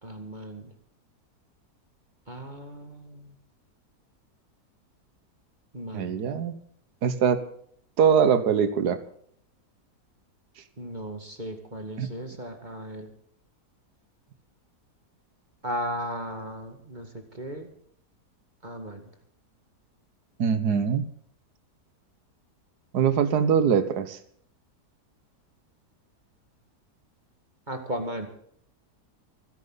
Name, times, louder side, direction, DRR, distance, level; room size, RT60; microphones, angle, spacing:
voice 1, 0.0-0.7 2.3-3.3 5.7-6.2 10.8-13.1 15.6-17.7 18.6-19.0 27.7-28.3, equal, 30° right, 5 dB, 2.2 m, -36 dB
voice 2, 5.9-6.5 7.0-7.4 8.0-9.0 12.0-12.1 20.4-21.1 22.9-24.2, right 7 dB, 75° right, 11 dB, 1.7 m, -22 dB
26.5 x 11.0 x 4.0 m, 0.64 s
omnidirectional pair, 1.7 m